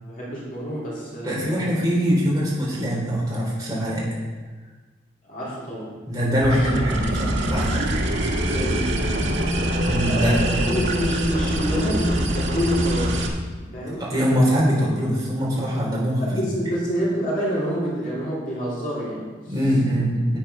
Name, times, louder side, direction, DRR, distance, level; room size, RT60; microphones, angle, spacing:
voice 1, 0.1-1.6 5.2-6.0 6.5-6.7 8.3-9.0 9.2-9.5 10.1-13.3 13.7-14.0 16.2-19.5, equal, 45° left, -6 dB, 3.1 m, -28 dB
voice 2, 1.2-4.0 6.1-8.0 9.7-10.5 14.0-16.2 19.5-20.4, equal, 20° right, -6 dB, 3.9 m, -22 dB
sound 1, 6.4-13.3, right 1 dB, 75° right, 1.5 m, -24 dB
9.0 x 8.0 x 5.7 m, 1.4 s
head